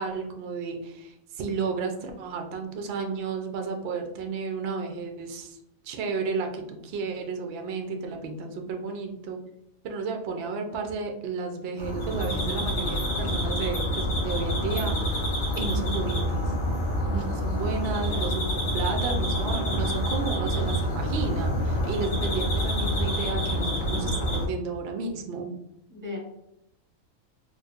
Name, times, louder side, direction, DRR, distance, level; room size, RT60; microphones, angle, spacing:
voice 1, 0.0-5.6 5.8-9.4 9.8-15.3 15.6-16.5 17.1-25.5, right 4 dB, 60° right, 3 dB, 0.7 m, -32 dB
sound 1, 11.8-24.5, equal, 65° left, 1.3 m, -27 dB
voice 2, 16.9-17.3 18.1-18.3 19.8-20.0 22.2-22.4 22.7-22.8 25.9-26.2, left 3 dB, 15° right, -3 dB, 1.1 m, -40 dB
4.1 x 2.5 x 2.4 m, 0.82 s
omnidirectional pair, 1.4 m